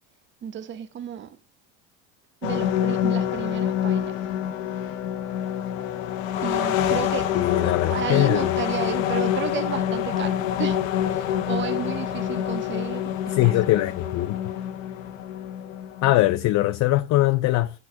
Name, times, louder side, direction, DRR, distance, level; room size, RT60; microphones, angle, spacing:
voice 1, 0.4-1.4 2.4-4.3 6.4-7.3 7.6-13.7, right 9 dB, 30° right, 0.7 m, -33 dB
sound 1, 2.4-16.3, left 10 dB, 85° left, 1.0 m, -26 dB
voice 2, 7.3-8.5 13.3-14.4 16.0-17.8, left 16 dB, 45° left, 0.6 m, -21 dB
6.0 x 4.4 x 5.9 m
supercardioid pair, 95°, 39 cm